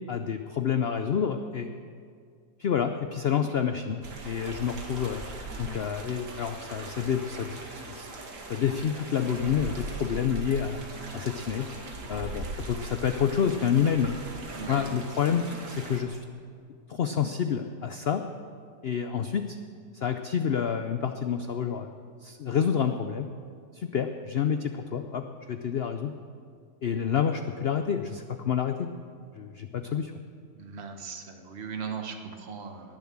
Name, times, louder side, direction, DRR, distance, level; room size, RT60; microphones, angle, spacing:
voice 1, 0.1-1.7 2.6-5.2 5.6-8.1 8.5-10.8 11.1-11.7 12.1-14.1 14.7-16.2 16.9-18.2 18.8-19.6 19.9-21.9 22.2-23.3 23.7-26.1 26.8-28.9 29.4-30.1, left 7 dB, 70° left, 7 dB, 0.5 m, -28 dB
sound 1, 4.0-16.0, right 2 dB, 85° right, 2.3 m, -40 dB
voice 2, 14.5-14.9 30.6-33.0, right 6 dB, 40° right, 5 dB, 1.4 m, -38 dB
19.5 x 7.3 x 7.3 m, 2.2 s
omnidirectional pair, 1.8 m